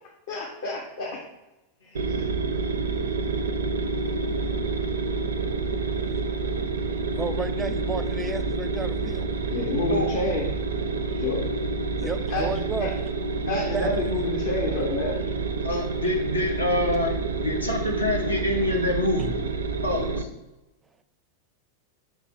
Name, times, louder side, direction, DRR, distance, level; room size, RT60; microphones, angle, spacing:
voice 1, 0.3-1.2 1.8-2.0 9.5-10.4 11.1-11.4 12.0-12.9 13.5-15.2, left 2 dB, 60° left, -3 dB, 1.1 m, -29 dB
sound 1, 1.9-20.2, right 4 dB, 70° right, 0.4 m, -28 dB
voice 2, 7.2-9.3 12.0-12.9 13.7-13.9, right 4 dB, 15° right, 12 dB, 0.5 m, -32 dB
voice 3, 15.6-17.1 17.4-19.3 19.8-20.3, left 1 dB, 80° left, 1 dB, 1.1 m, -26 dB
5.6 x 4.0 x 4.3 m, 0.99 s
figure-of-eight pair, 90°, 0 cm